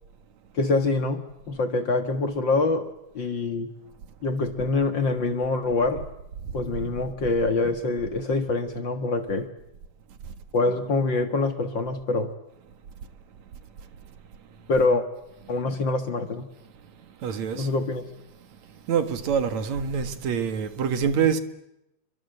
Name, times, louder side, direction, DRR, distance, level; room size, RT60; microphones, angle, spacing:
voice 1, 0.5-3.7 4.2-6.1 6.5-9.5 10.5-12.3 14.7-15.0 15.5-16.5 17.5-18.1, left 3 dB, 45° left, 2.1 m, -25 dB
voice 2, 17.2-17.7 18.9-21.4, right 7 dB, 70° right, 3.0 m, -25 dB
29.5 x 24.5 x 8.0 m
omnidirectional pair, 3.3 m